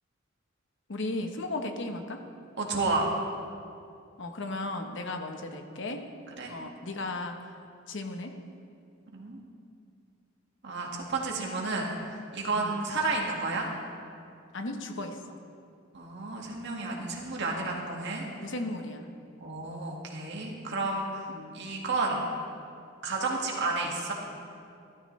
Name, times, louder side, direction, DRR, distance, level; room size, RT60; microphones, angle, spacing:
voice 1, 0.9-2.2 4.2-6.0 6.5-7.4 7.9-8.3 12.5-12.8 14.5-15.4 18.4-19.1 21.3-21.7, left 2 dB, 65° left, 5 dB, 1.1 m, -35 dB
voice 2, 2.6-3.1 6.4-6.5 9.1-9.4 10.6-11.9 12.3-13.7 15.9-18.3 19.4-21.3 21.5-22.2 23.0-24.1, right 3 dB, 60° right, -1 dB, 1.9 m, -31 dB
17.0 x 12.5 x 3.3 m, 2.5 s
head